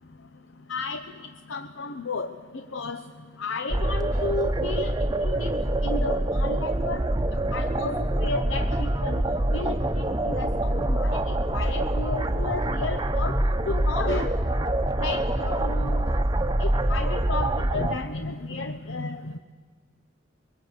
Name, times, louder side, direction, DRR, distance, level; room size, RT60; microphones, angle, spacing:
voice 1, 0.7-1.0 1.5-2.3 2.5-3.0 3.4-4.9 5.2-5.5 5.8-7.0 7.5-9.2 9.5-13.4 13.7-14.3 15.0-16.1 16.6-19.4, left 3 dB, 85° left, 8 dB, 0.9 m, -33 dB
sound 1, 3.7-18.0, right 1 dB, 20° right, 0.8 m, -25 dB
23.5 x 22.5 x 8.1 m, 1.5 s
head